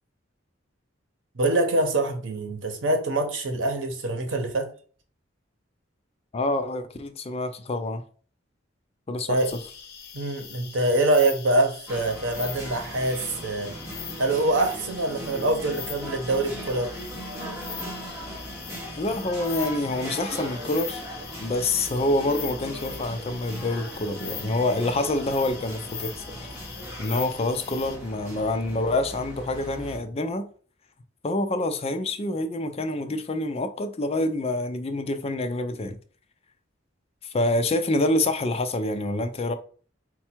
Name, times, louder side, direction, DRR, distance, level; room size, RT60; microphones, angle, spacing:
voice 1, 1.3-4.7 9.3-9.5 10.1-13.8 14.2-16.9, right 2 dB, 85° right, 0.9 m, -24 dB
voice 2, 6.3-8.0 9.1-9.4 19.0-21.0 21.4-26.1 27.0-30.5 31.2-36.0 37.2-39.5, left 2 dB, 30° left, 0.4 m, -26 dB
sound 1, 9.4-28.0, left 7 dB, 55° left, 0.8 m, -41 dB
sound 2, 11.9-30.0, right 1 dB, 15° right, 1.4 m, -39 dB
4.3 x 2.3 x 4.3 m
head